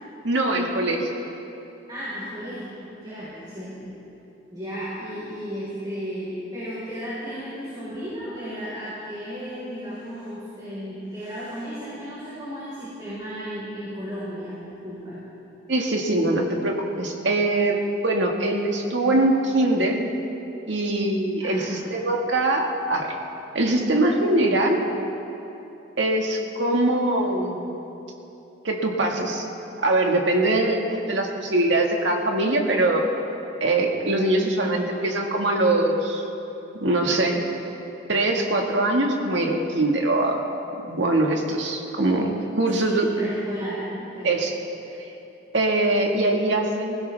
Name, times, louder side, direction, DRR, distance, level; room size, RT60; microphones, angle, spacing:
voice 1, 0.2-1.1 15.7-20.0 20.7-23.2 23.5-24.8 26.0-27.6 28.6-29.5 29.8-33.1 33.6-36.2 36.7-37.4 38.1-40.4 40.9-43.1 44.2-44.5 45.5-47.0, right 2 dB, 75° right, 1 dB, 1.8 m, -22 dB
voice 2, 1.9-3.9 4.5-15.2 21.4-21.8 42.7-44.4, equal, 25° right, -10 dB, 4.3 m, -34 dB
23.5 x 16.0 x 3.5 m, 3.0 s
head